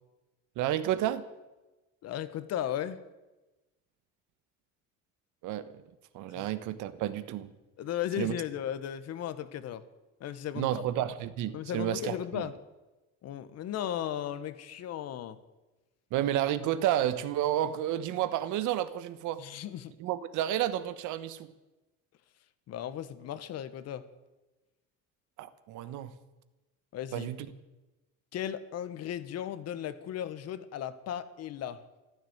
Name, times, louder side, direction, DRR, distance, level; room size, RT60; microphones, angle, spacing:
voice 1, 0.6-1.2 5.4-5.8 6.1-7.5 8.2-8.3 10.5-12.5 16.1-19.4 20.0-21.5 25.4-26.2 27.1-27.5, right 12 dB, 65° right, 1.2 m, -31 dB
voice 2, 2.0-3.0 6.3-6.4 7.8-9.8 10.2-10.8 11.5-12.6 13.2-15.4 19.4-19.9 22.7-24.0 26.9-27.3 28.3-31.8, left 10 dB, 50° left, 1.2 m, -36 dB
14.0 x 12.5 x 8.0 m
cardioid pair, 140°, 32 cm